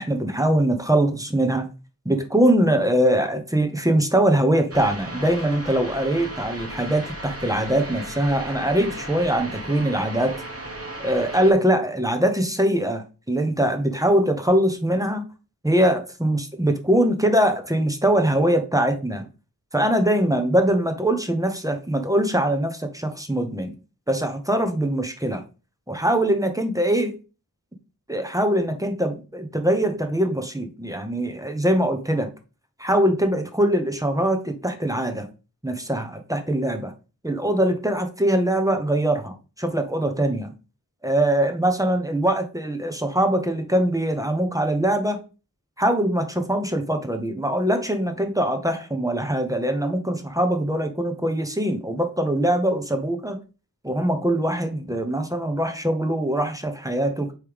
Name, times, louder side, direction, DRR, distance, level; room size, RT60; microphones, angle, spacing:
voice 1, 0.0-1.7 2.0-10.4 11.0-15.2 15.6-19.2 19.7-23.7 24.1-25.4 25.9-27.2 28.1-32.3 32.8-35.3 35.6-36.9 37.2-40.5 41.0-45.2 45.8-53.4 53.8-57.3, right 1 dB, 10° right, 6 dB, 0.9 m, -22 dB
sound 1, 4.7-11.5, right 1 dB, 40° right, 1.4 m, -36 dB
8.4 x 3.2 x 3.5 m, 0.33 s
wide cardioid pair, 60°, 35 cm